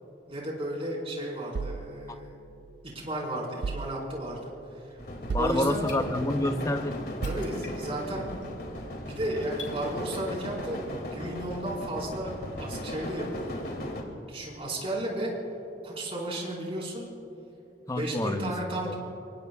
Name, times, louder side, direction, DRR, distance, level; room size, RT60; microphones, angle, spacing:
voice 1, 0.3-2.4 2.8-5.0 5.4-5.9 7.2-8.3 9.0-13.6 14.3-15.3 15.8-17.1 17.9-19.0, right 1 dB, 30° right, -3 dB, 4.7 m, -34 dB
sound 1, 1.5-2.9 3.6-4.5 5.3-6.2 7.2-8.0, right 4 dB, 60° right, 0.4 m, -37 dB
sound 2, 5.0-14.0, left 1 dB, 55° left, 2.4 m, -37 dB
sound 3, 5.1-5.2 5.5-6.5 6.8-6.9 7.2-8.1 8.4-8.7 9.2-10.0 10.5-10.6, left 5 dB, 75° left, 2.5 m, -46 dB
voice 2, 5.3-7.0 17.9-18.5 18.8-18.9, left 1 dB, 20° left, 7 dB, 0.8 m, -28 dB
26.0 x 23.5 x 2.4 m, 2.8 s
head